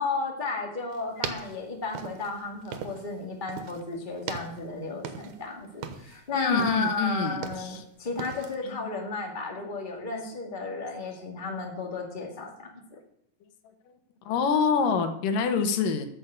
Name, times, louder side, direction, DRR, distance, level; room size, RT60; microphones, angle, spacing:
voice 1, 0.0-12.7, left 3 dB, 15° left, 1 dB, 1.9 m, -33 dB
sound 1, 0.9-3.2 3.5-3.9 4.2-5.5 5.7-6.2 6.6-7.8 8.2-8.6, right 7 dB, 70° right, 2.4 m, -38 dB
voice 2, 6.3-7.8 8.6-8.9 9.6-9.7 14.3-16.1, left 5 dB, 85° left, 8 dB, 2.8 m, -26 dB
13.5 x 6.5 x 8.2 m, 0.73 s
omnidirectional pair, 3.7 m